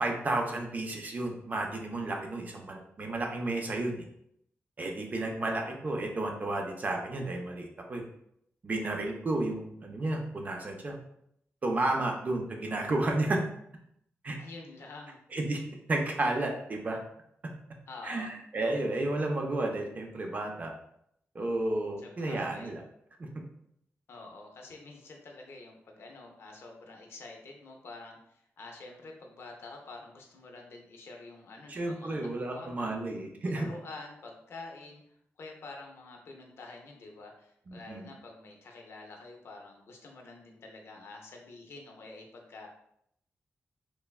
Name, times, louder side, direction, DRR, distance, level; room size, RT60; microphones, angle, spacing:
voice 1, 0.0-4.0 4.8-8.0 8.6-11.0 11.6-13.4 14.2-14.4 15.3-15.6 15.9-17.0 18.0-20.7 21.3-22.8 23.2-23.3 31.7-33.7 37.7-38.1, right 2 dB, 35° right, 2 dB, 0.4 m, -32 dB
voice 2, 14.4-15.2 17.9-18.3 22.0-22.7 24.1-33.0 33.5-42.7, left 3 dB, 60° left, 1 dB, 0.5 m, -47 dB
3.1 x 2.1 x 2.3 m, 0.73 s
wide cardioid pair, 170°, 5 cm